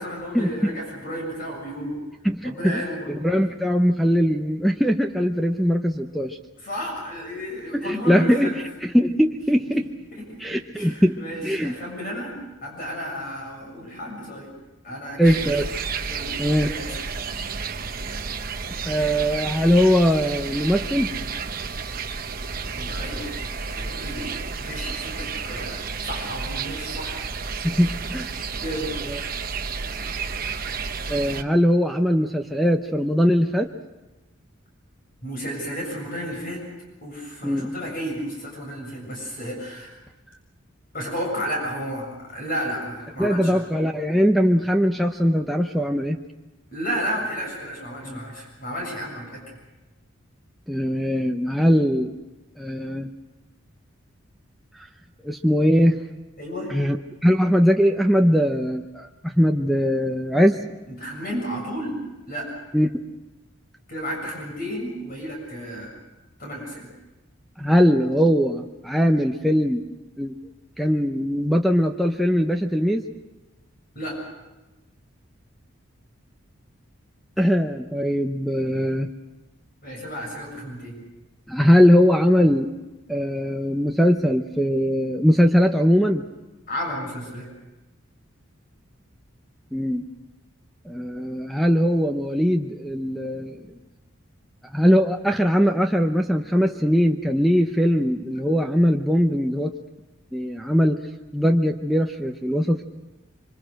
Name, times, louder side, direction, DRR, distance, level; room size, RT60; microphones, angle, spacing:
voice 1, 0.0-2.0 2.4-3.1 6.6-8.6 10.7-14.5 14.8-15.5 16.1-16.3 16.6-17.0 21.9-22.0 22.7-23.3 23.7-27.2 28.6-28.9 35.2-36.6 37.0-39.9 40.9-43.6 46.7-49.4 56.4-56.7 60.9-62.0 62.3-62.5 63.9-65.9 66.4-66.9 74.0-74.2 79.8-81.0 86.7-87.5, equal, 45° left, 0 dB, 7.2 m, -32 dB
voice 2, 2.2-6.4 7.7-8.5 8.8-9.9 10.4-11.7 15.2-15.6 16.4-16.7 18.8-21.1 27.6-28.4 29.0-29.2 31.1-33.7 37.4-37.7 43.2-46.2 48.0-48.2 50.7-52.1 52.6-53.1 54.8-54.9 55.2-56.0 56.7-60.6 62.7-62.9 67.6-69.8 70.2-70.4 70.8-73.0 77.4-79.1 81.5-82.7 83.1-86.2 89.7-90.0 90.8-93.6 94.7-99.7 100.3-101.0 101.3-102.8, equal, ahead, 4 dB, 0.8 m, -21 dB
sound 1, 15.2-31.4, right 5 dB, 45° right, 1.0 m, -31 dB
26.5 x 25.0 x 6.5 m, 1.1 s
head